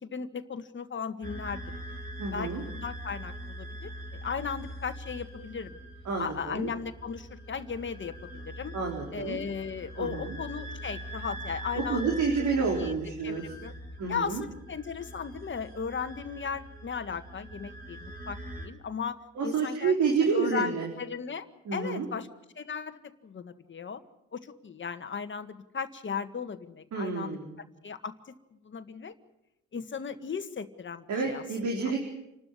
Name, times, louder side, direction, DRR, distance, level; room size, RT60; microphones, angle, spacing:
voice 1, 0.0-1.6 2.3-5.8 6.2-8.7 9.1-12.2 12.8-12.9 13.2-13.7 14.1-19.2 19.4-19.9 20.2-21.5 21.7-22.3 22.6-24.0 24.3-27.4 27.8-28.1 28.6-29.1 29.7-31.4, left 6 dB, 40° left, 9 dB, 1.8 m, -36 dB
sound 1, 1.2-18.7, right 1 dB, 30° right, 4.0 m, -42 dB
voice 2, 2.2-2.6 6.1-6.7 8.7-9.4 10.0-10.3 11.7-13.5 14.0-14.4 19.3-20.9 21.7-22.1 26.9-27.5 31.1-32.0, right 5 dB, 70° right, 1 dB, 4.2 m, -29 dB
28.5 x 12.5 x 10.0 m, 0.88 s
cardioid pair, 90°, 30 cm